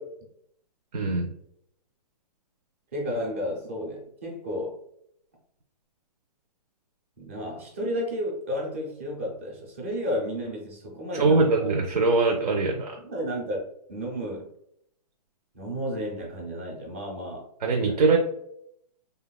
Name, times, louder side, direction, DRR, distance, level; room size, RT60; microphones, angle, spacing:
voice 1, 0.9-1.3 11.1-13.0 17.6-18.2, right 3 dB, 85° right, 2 dB, 0.6 m, -22 dB
voice 2, 2.9-4.8 7.2-11.7 13.0-13.6 13.9-14.5 15.5-18.1, equal, 20° right, -1 dB, 0.4 m, -32 dB
3.3 x 2.2 x 2.2 m, 0.73 s
hypercardioid pair, 175°, 21 cm